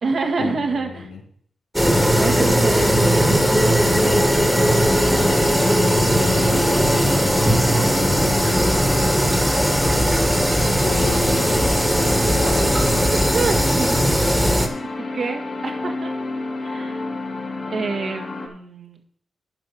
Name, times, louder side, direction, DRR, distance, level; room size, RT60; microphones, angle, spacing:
voice 1, 0.0-1.1 2.2-3.8 7.7-8.3 12.1-12.7 13.3-14.4 15.0-16.1 16.6-17.1 17.7-19.0, right 4 dB, 60° right, 3 dB, 2.0 m, -28 dB
sound 1, 1.7-14.7, equal, 5° right, 1.9 m, -18 dB
sound 2, 1.9-18.5, left 3 dB, 55° left, 2.1 m, -30 dB
voice 2, 5.9-7.1 10.8-11.6 12.0-12.9, left 5 dB, 85° left, 2 dB, 1.9 m, -31 dB
10.0 x 5.6 x 5.9 m, 0.62 s
cardioid pair, 60°, 0 cm